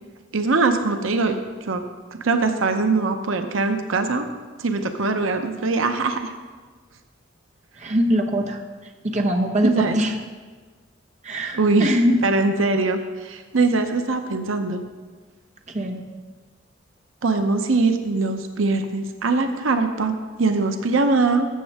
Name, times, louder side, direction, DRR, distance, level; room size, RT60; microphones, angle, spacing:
voice 1, 0.3-1.8 2.1-4.3 4.6-6.3 9.6-10.0 11.5-11.9 12.2-14.8 17.2-21.5, right 3 dB, 85° right, 7 dB, 0.8 m, -22 dB
voice 2, 7.8-10.1 11.2-12.2 15.7-16.1, equal, 35° right, 3 dB, 0.8 m, -23 dB
13.5 x 7.2 x 3.5 m, 1.4 s
head